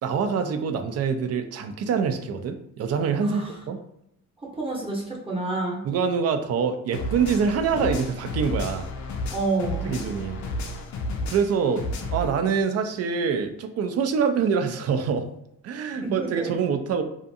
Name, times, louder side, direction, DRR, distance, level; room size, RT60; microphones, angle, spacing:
voice 1, 0.0-3.4 3.7-3.8 5.8-8.9 9.8-10.4 11.3-11.8 12.1-15.3 15.6-17.0, right 6 dB, 55° right, 8 dB, 0.4 m, -25 dB
voice 2, 4.5-5.8 9.3-9.9 16.0-16.5, right 2 dB, 20° right, -3 dB, 0.8 m, -28 dB
sound 1, 6.9-12.3, left 1 dB, 70° left, 0.5 m, -32 dB
2.4 x 2.4 x 2.6 m, 0.79 s
cardioid pair, 90°, 30 cm